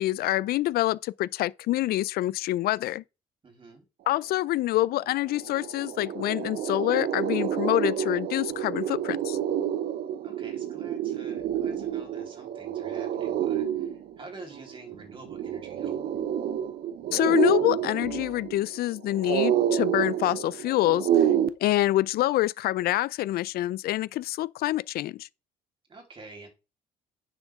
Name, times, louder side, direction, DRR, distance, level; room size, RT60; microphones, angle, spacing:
voice 1, 0.0-3.0 4.1-9.4 17.1-21.3 21.6-25.3, left 15 dB, 65° left, 0.4 m, -26 dB
voice 2, 3.4-3.8 10.2-16.0 25.9-26.5, right 3 dB, 30° right, 3.8 m, -47 dB
sound 1, 4.9-5.0 5.3-21.5, right 10 dB, 65° right, 0.8 m, -29 dB
9.9 x 6.3 x 3.6 m
cardioid pair, 110°, 17 cm